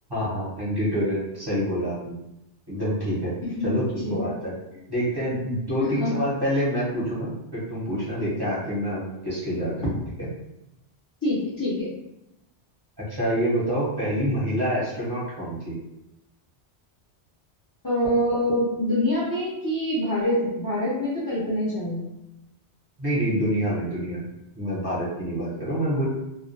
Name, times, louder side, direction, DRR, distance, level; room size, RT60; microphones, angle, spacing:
voice 1, 0.1-2.2 2.7-3.3 3.6-4.5 4.9-9.8 10.2-10.3 13.1-15.7 23.0-24.2 24.5-26.1, equal, 25° right, -8 dB, 0.6 m, -27 dB
voice 2, 3.4-3.7 4.0-4.3 6.0-6.2 11.2-11.9 17.8-22.0, left 1 dB, 30° left, -10 dB, 0.4 m, -25 dB
2.3 x 2.2 x 2.6 m, 0.88 s
omnidirectional pair, 1.2 m